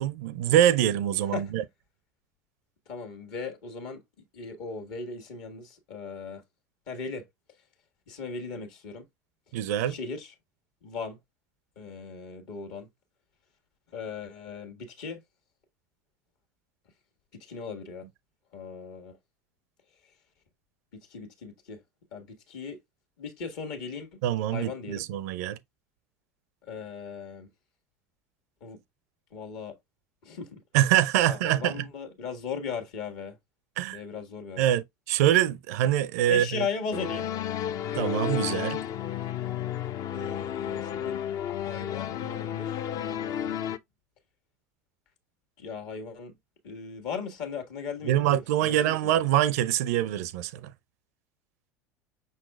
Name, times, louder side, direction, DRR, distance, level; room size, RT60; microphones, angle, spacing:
voice 1, 0.0-1.6 9.5-10.0 24.2-25.6 30.7-31.9 33.8-34.0 34.6-36.7 37.9-38.8 48.0-50.7, right 12 dB, 65° right, 0.5 m, -24 dB
voice 2, 2.9-4.0 4.3-6.4 6.9-7.3 8.1-9.0 9.9-10.3 10.8-11.2 11.8-12.9 13.9-15.2 17.4-18.1 18.5-19.2 20.9-21.8 22.1-22.8 23.2-24.2 24.5-25.1 26.6-27.5 28.6-28.8 29.3-29.8 30.2-30.6 31.3-33.4 33.9-34.6 36.3-37.3 40.1-41.2 41.6-43.6 45.6-46.4 46.6-49.2, left 5 dB, 60° left, 1.4 m, -37 dB
sound 1, 36.9-43.8, left 10 dB, 45° left, 0.5 m, -32 dB
5.8 x 4.1 x 2.2 m
figure-of-eight pair, 75°, 9 cm